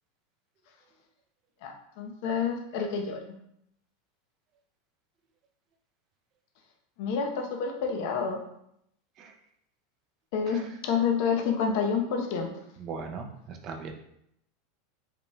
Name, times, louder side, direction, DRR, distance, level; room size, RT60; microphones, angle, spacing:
voice 1, 1.6-3.2 7.0-8.4 10.3-12.5, left 6 dB, 55° left, 3 dB, 0.7 m, -28 dB
voice 2, 12.8-13.9, right 5 dB, 30° right, 4 dB, 0.5 m, -39 dB
4.9 x 3.5 x 2.2 m, 0.75 s
supercardioid pair, 160°, 0 cm